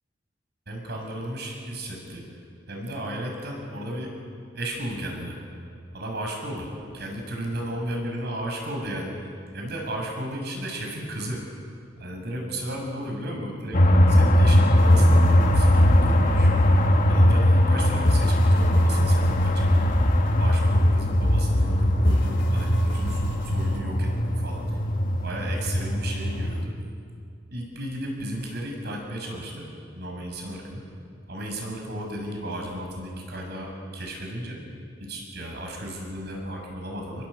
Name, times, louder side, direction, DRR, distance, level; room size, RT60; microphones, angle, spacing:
voice 1, 0.7-2.2 2.7-4.1 4.5-5.4 5.9-6.7 6.9-9.2 9.5-11.4 12.0-16.6 17.1-20.0 20.4-24.1 24.4-24.8 25.2-26.7 27.5-29.7 29.9-30.8 31.3-34.6 35.0-37.3, right 1 dB, 60° right, 1 dB, 6.8 m, -34 dB
sound 1, 13.7-26.7, left 1 dB, 45° left, 1.6 m, -20 dB
sound 2, 14.8-17.8 18.0-21.7 22.0-23.8, left 1 dB, 65° left, 2.5 m, -34 dB
28.0 x 21.5 x 8.2 m, 2.3 s
head